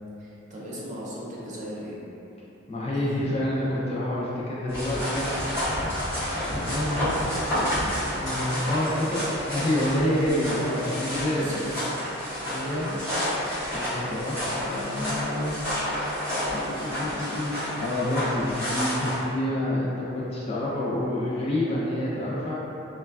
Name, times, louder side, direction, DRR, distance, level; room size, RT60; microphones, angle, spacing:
voice 1, 0.2-2.0 2.9-3.2 11.2-11.9 12.3-13.2, equal, 35° right, -7 dB, 0.5 m, -39 dB
voice 2, 2.7-5.3 6.3-7.1 8.2-11.7 12.5-12.9 13.7-15.6 16.5-22.6, left 1 dB, 30° left, -6 dB, 0.4 m, -28 dB
sound 1, 4.7-19.2, equal, 10° right, 1.5 m, -30 dB
3.0 x 2.3 x 2.3 m, 3.0 s
head